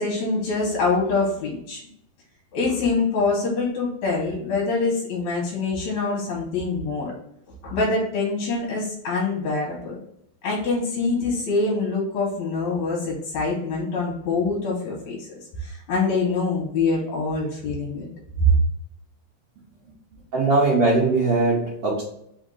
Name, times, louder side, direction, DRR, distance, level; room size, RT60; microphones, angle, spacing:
voice 1, 0.0-1.8 2.5-7.1 7.6-9.9 10.4-15.3 15.6-18.1 18.4-18.5, left 3 dB, 65° left, -4 dB, 2.1 m, -24 dB
voice 2, 20.3-22.0, right 3 dB, 75° right, -5 dB, 1.3 m, -20 dB
5.0 x 2.6 x 3.9 m, 0.75 s
omnidirectional pair, 3.8 m